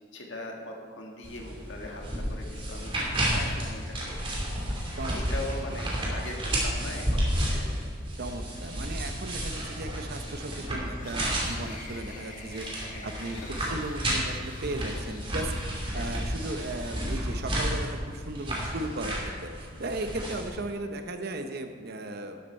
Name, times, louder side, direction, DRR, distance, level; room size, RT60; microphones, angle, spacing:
voice 1, 0.1-4.4 5.0-7.7 12.9-13.8 15.9-16.3, left 1 dB, 65° left, 1 dB, 1.8 m, -41 dB
sound 1, 1.2-20.5, equal, 25° right, 2.9 m, -32 dB
voice 2, 5.7-6.1 8.2-15.5 15.9-22.4, right 2 dB, 55° right, 6 dB, 0.7 m, -36 dB
sound 2, 9.8-16.0, left 3 dB, 40° left, 1.5 m, -48 dB
12.0 x 11.5 x 4.4 m, 2.1 s
head